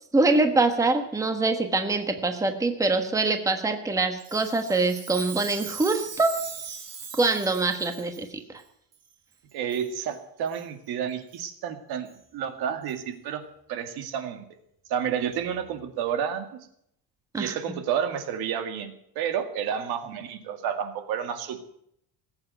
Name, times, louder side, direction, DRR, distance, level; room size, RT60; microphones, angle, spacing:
voice 1, 0.1-6.4 7.1-8.3 17.3-17.6, right 3 dB, 10° right, 6 dB, 1.2 m, -24 dB
Chime, 4.2-8.3 8.9-9.0 9.7-9.9 10.5-10.6 11.3-11.4 12.1-12.2 12.9-13.0, right 6 dB, 40° right, 2.7 m, -40 dB
voice 2, 9.5-14.4 14.9-16.6 17.3-21.6, right 8 dB, 70° right, 8 dB, 2.2 m, -30 dB
19.0 x 8.7 x 7.8 m, 0.72 s
cardioid pair, 150°, 39 cm